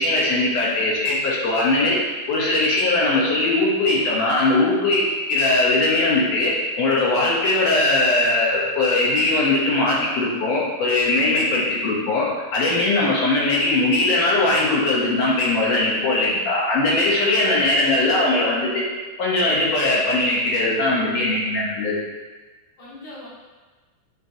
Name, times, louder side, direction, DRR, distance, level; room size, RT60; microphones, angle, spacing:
voice 1, 0.0-2.0 2.3-18.8 19.2-22.0, left 2 dB, 70° left, -4 dB, 1.7 m, -20 dB
voice 2, 17.2-17.9 22.8-23.3, left 1 dB, 45° left, -10 dB, 1.7 m, -40 dB
5.4 x 3.6 x 2.6 m, 1.3 s
omnidirectional pair, 3.7 m